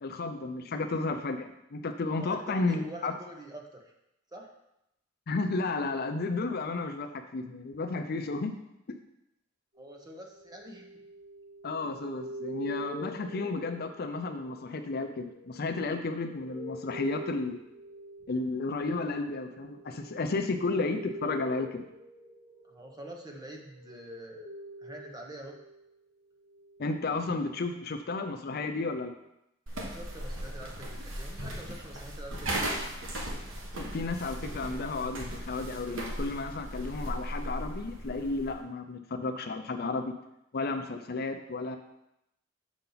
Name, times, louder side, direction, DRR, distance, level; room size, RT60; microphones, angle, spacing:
voice 1, 0.0-3.1 5.3-8.6 11.6-17.6 18.3-21.9 26.8-29.1 33.8-40.1 40.5-41.8, left 3 dB, 50° left, 7 dB, 0.5 m, -33 dB
voice 2, 2.2-3.8 4.3-4.5 9.8-11.0 22.6-24.5 24.8-25.6 29.7-32.5, right 1 dB, 20° right, 1 dB, 1.0 m, -45 dB
sound 1, 9.7-26.0 26.4-27.2, right 1 dB, 40° right, 1.5 m, -46 dB
sound 2, 29.7-38.6, right 1 dB, 75° right, 1.2 m, -37 dB
7.0 x 5.7 x 4.0 m, 0.84 s
head